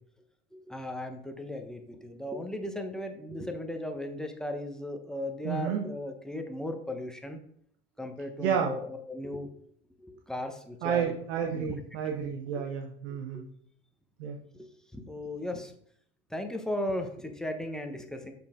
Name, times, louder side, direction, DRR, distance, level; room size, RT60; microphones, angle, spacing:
voice 1, 0.5-7.4 8.0-9.5 10.0-11.1 11.5-11.8 12.5-12.7 13.3-13.4 14.5-15.7 16.3-18.3, left 1 dB, ahead, 4 dB, 1.1 m, -36 dB
voice 2, 5.4-5.8 8.4-8.8 10.8-13.5 14.2-14.4, right 7 dB, 70° right, 2 dB, 1.1 m, -30 dB
6.6 x 5.8 x 3.8 m, 0.65 s
hypercardioid pair, 85°, 34 cm